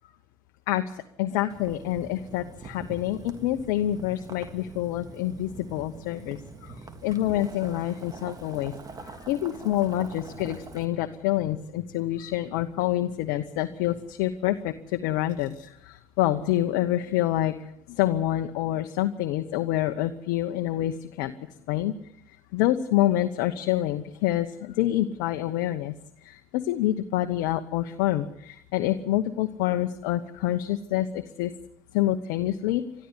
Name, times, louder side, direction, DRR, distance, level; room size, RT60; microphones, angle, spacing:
voice 1, 0.7-8.7 9.0-21.3 21.7-21.9 22.5-25.9 26.2-31.5 31.9-32.8, left 13 dB, 80° left, 7 dB, 1.0 m, -27 dB
Boiling, 1.5-10.8, right 3 dB, 35° right, 3.1 m, -44 dB
21.5 x 14.0 x 9.8 m, 0.74 s
hypercardioid pair, 70°, 10 cm